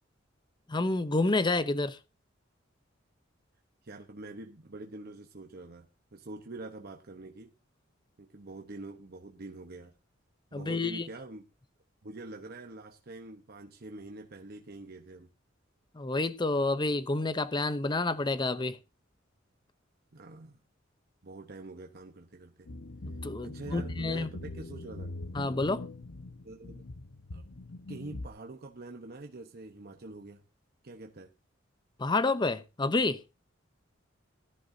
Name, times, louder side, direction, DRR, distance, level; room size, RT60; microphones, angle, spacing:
voice 1, 0.7-2.0 10.5-11.1 15.9-18.8 23.2-24.3 25.3-25.8 32.0-33.2, left 2 dB, 25° left, 0.7 m, -29 dB
voice 2, 3.8-7.5 8.2-9.9 10.5-11.4 12.0-15.3 20.1-20.6 21.2-22.7 23.4-25.1 26.4-26.9 27.3-27.5 27.9-30.4 30.8-31.3, right 2 dB, 55° right, 1.0 m, -45 dB
sound 1, 22.7-28.3, left 2 dB, 90° left, 1.1 m, -42 dB
18.0 x 11.0 x 2.7 m
head